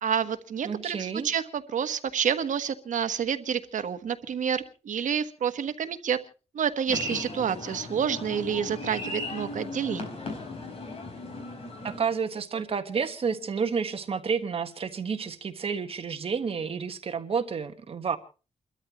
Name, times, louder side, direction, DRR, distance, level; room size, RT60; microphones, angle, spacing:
voice 1, 0.0-6.2 6.5-10.0, right 8 dB, 75° right, 1.3 m, -29 dB
voice 2, 0.6-1.3 11.8-18.2, right 6 dB, 45° right, 1.5 m, -30 dB
sound 1, 6.9-12.0, left 2 dB, 45° left, 4.5 m, -36 dB
29.5 x 13.0 x 3.0 m
wide cardioid pair, 180°, 13 cm